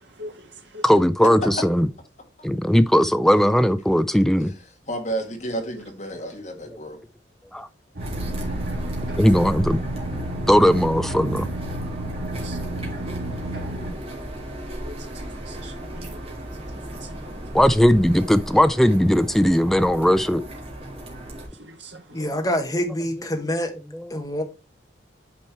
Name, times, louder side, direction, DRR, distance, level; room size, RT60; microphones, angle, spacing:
voice 1, 0.8-1.9 2.4-4.5 7.5-7.7 9.2-9.8 10.5-11.5 17.5-20.4, equal, ahead, 0.4 m, -18 dB
voice 2, 4.9-7.0, right 1 dB, 40° left, 1.9 m, -31 dB
sound 1, 7.9-13.9, right 1 dB, 55° right, 1.9 m, -32 dB
sound 2, 8.0-21.5, right 1 dB, 30° right, 2.0 m, -34 dB
voice 3, 12.4-13.0 13.3-13.4 14.9-15.1 15.4-16.2 16.7-17.4 21.6-22.3, right 1 dB, 70° right, 2.0 m, -42 dB
voice 4, 22.1-23.7 24.1-24.4, equal, 20° left, 1.3 m, -26 dB
8.5 x 4.4 x 4.5 m
head